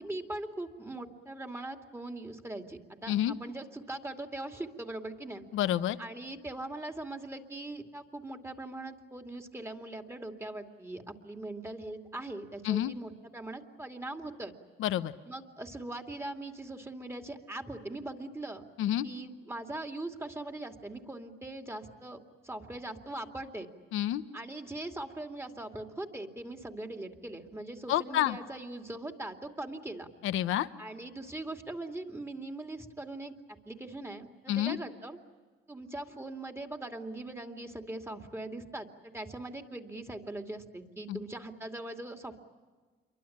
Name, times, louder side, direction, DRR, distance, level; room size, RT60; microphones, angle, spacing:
voice 1, 0.0-5.5 6.0-14.5 15.2-18.7 19.0-23.7 24.3-30.1 30.8-33.3 33.7-35.2 35.7-42.4, right 2 dB, 10° right, 5 dB, 2.6 m, -41 dB
voice 2, 5.5-6.0 12.6-13.0 14.8-15.1 18.8-19.1 23.9-24.2 27.9-28.4 30.2-30.7 34.5-34.8 41.1-41.2, left 12 dB, 85° left, 12 dB, 1.0 m, -28 dB
28.0 x 23.5 x 8.7 m, 1.4 s
cardioid pair, 90°, 20 cm